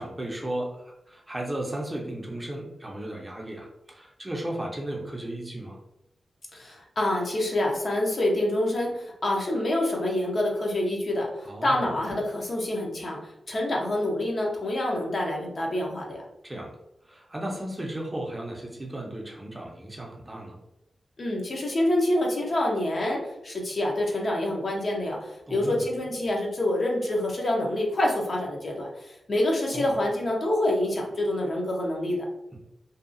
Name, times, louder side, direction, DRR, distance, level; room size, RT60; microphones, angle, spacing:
voice 1, 0.0-5.8 11.5-11.9 16.4-16.7 17.1-20.6 25.5-25.8 29.7-29.9, right 1 dB, 20° right, 0 dB, 0.5 m, -35 dB
voice 2, 6.5-16.2 21.2-32.2, left 1 dB, 50° left, -1 dB, 0.6 m, -27 dB
2.7 x 2.3 x 2.5 m, 0.84 s
wide cardioid pair, 90°, 0 cm